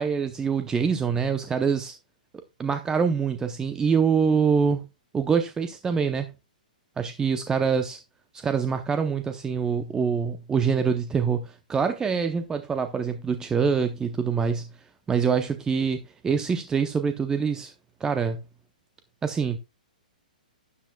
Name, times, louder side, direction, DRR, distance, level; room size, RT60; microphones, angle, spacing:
voice 1, 0.0-2.0 2.6-4.8 5.1-6.3 7.0-8.0 8.3-14.7 15.1-17.7 18.0-18.4 19.2-19.6, right 6 dB, 15° right, 0.7 m, -25 dB
12.5 x 10.0 x 2.3 m
hypercardioid pair, 125°, 5 cm